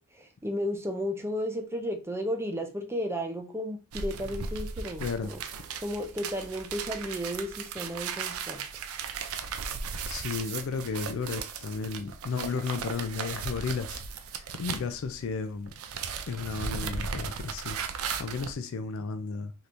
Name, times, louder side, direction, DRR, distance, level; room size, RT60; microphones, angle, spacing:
voice 1, 0.1-5.4 5.8-8.6, equal, 10° right, 0.5 m, -33 dB
sound 1, 3.9-15.4 15.6-18.5, right 6 dB, 70° right, 0.4 m, -37 dB
voice 2, 5.0-5.3 10.1-14.0 14.5-15.7 16.3-17.8 18.0-19.5, left 5 dB, 60° left, 0.4 m, -33 dB
3.3 x 2.8 x 2.5 m
head